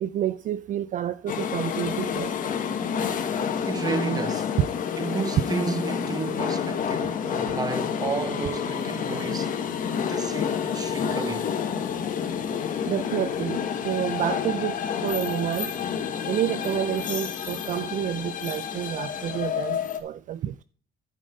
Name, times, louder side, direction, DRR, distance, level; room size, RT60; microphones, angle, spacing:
voice 1, 0.0-2.3 4.6-4.7 12.9-14.8 15.0-15.7 16.3-20.6, right 11 dB, 50° right, 0.4 m, -29 dB
sound 1, 1.3-20.0, left 8 dB, 50° left, 1.4 m, -29 dB
voice 2, 3.7-4.5 5.0-9.6 10.1-11.5, right 4 dB, 20° right, 0.9 m, -31 dB
11.0 x 5.4 x 5.3 m
cardioid pair, 110°, 17 cm